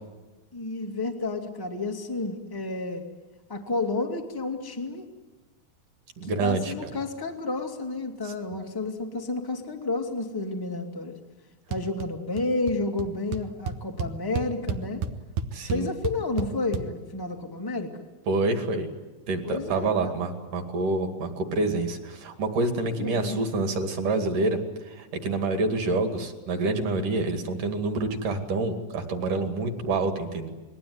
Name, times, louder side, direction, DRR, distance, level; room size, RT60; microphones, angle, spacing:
voice 1, 0.5-3.0 3.5-5.1 6.2-11.2 11.7-15.0 15.7-18.0 19.4-20.2 22.7-23.4, left 2 dB, 20° left, 3 dB, 0.5 m, -31 dB
voice 2, 6.2-6.9 15.5-15.9 18.3-18.9 19.3-24.6 24.9-30.5, right 3 dB, 50° right, 6 dB, 3.4 m, -27 dB
sound 1, 11.7-12.1 12.3-12.7 13.0-13.1 13.3-16.8, right 6 dB, 75° right, 2.0 m, -31 dB
28.0 x 21.0 x 9.6 m, 1.2 s
omnidirectional pair, 5.2 m